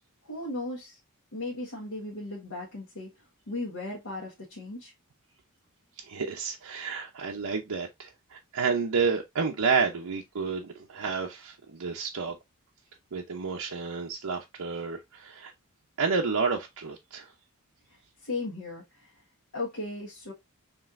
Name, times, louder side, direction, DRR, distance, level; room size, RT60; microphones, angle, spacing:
voice 1, 0.2-1.0 1.3-3.1 3.5-4.9 18.2-19.2 19.5-20.3, left 2 dB, 90° left, 1.5 m, -36 dB
voice 2, 6.0-12.3 13.1-15.5 16.0-17.3, right 5 dB, 85° right, 0.7 m, -30 dB
5.3 x 3.3 x 2.5 m
head